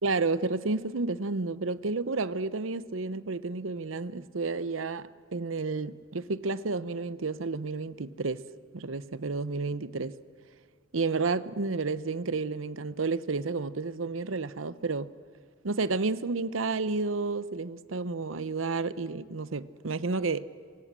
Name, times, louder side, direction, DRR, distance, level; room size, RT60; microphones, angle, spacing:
voice 1, 0.0-8.4 8.7-10.2 10.9-15.1 15.6-20.5, right 3 dB, 80° right, 0.8 m, -31 dB
27.0 x 23.0 x 7.5 m
head